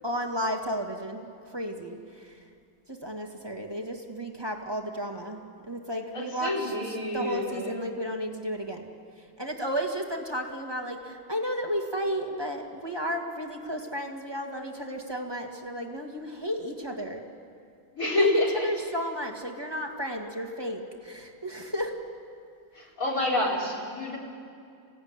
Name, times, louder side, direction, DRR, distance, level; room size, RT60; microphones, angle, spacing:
voice 1, 0.0-2.4 2.9-8.9 9.4-17.2 18.0-22.0, equal, 15° right, 2 dB, 1.8 m, -33 dB
voice 2, 6.1-7.7 18.0-18.7 22.7-24.2, left 2 dB, 45° left, -3 dB, 5.0 m, -28 dB
26.5 x 17.0 x 9.6 m, 2.4 s
omnidirectional pair, 2.1 m